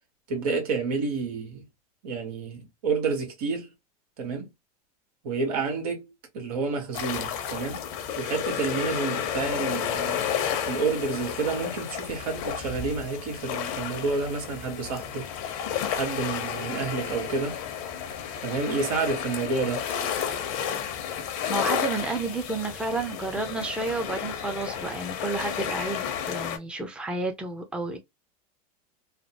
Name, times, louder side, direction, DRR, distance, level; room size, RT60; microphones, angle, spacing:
voice 1, 0.3-1.6 2.0-3.7 4.2-4.5 5.2-6.1 6.3-7.8 8.2-10.3 10.6-15.3 15.9-17.6 18.4-19.9, right 4 dB, 80° right, 1.5 m, -29 dB
sound 1, 6.9-26.6, left 9 dB, 60° left, 0.9 m, -32 dB
voice 2, 21.5-28.0, right 3 dB, 5° right, 0.7 m, -31 dB
3.2 x 2.0 x 2.8 m
hypercardioid pair, 110°, 19 cm